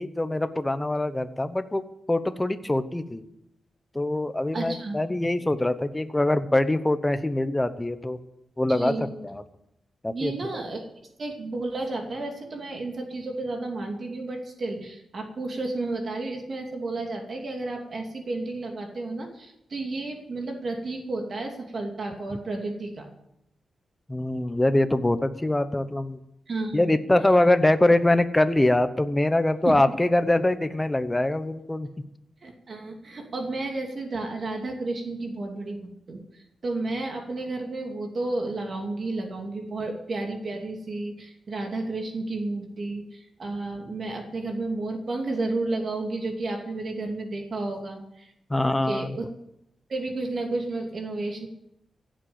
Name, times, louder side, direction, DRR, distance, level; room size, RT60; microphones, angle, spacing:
voice 1, 0.0-1.8 2.1-3.3 3.9-8.2 8.6-8.9 9.2-9.4 10.0-10.3 24.1-26.2 26.7-31.9 48.5-49.2, left 1 dB, 10° left, 11 dB, 0.9 m, -23 dB
voice 2, 4.5-5.0 8.7-9.1 10.1-10.9 11.2-23.1 26.5-26.9 29.6-29.9 32.4-35.8 36.1-48.3 48.9-49.2 49.9-51.5, right 2 dB, 45° right, 2 dB, 2.6 m, -32 dB
16.0 x 7.8 x 8.7 m, 0.83 s
wide cardioid pair, 120°, 0 cm